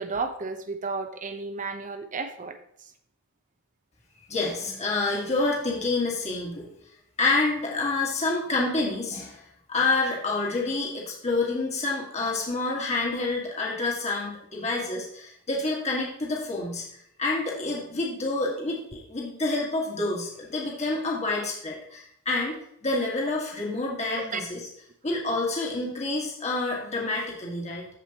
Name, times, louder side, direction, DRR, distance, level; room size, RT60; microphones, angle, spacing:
voice 1, 0.0-2.5 24.1-24.4, right 4 dB, 40° right, 7 dB, 0.9 m, -32 dB
voice 2, 4.3-6.6 7.2-16.8 17.2-24.7 25.0-27.9, left 3 dB, 30° left, -3 dB, 1.8 m, -28 dB
14.5 x 5.0 x 3.0 m, 0.70 s
head